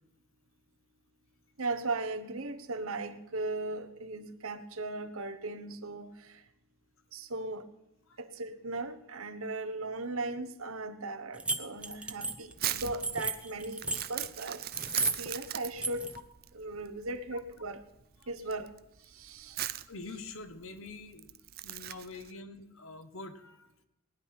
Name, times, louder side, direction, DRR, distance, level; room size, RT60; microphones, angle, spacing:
voice 1, 1.6-6.4 7.1-7.7 8.2-14.6 15.2-16.1 16.5-17.8 18.3-18.7 19.1-19.6, right 2 dB, 75° right, 1.2 m, -37 dB
sound 1, 11.4-14.3 14.7-15.3 15.6-16.2, right 3 dB, 5° right, 0.6 m, -33 dB
Crumpling crinkling, 11.8-22.3, right 13 dB, 45° right, 0.6 m, -40 dB
voice 2, 19.9-21.3 21.6-23.8, left 3 dB, 65° left, 1.4 m, -45 dB
19.0 x 10.5 x 5.9 m
head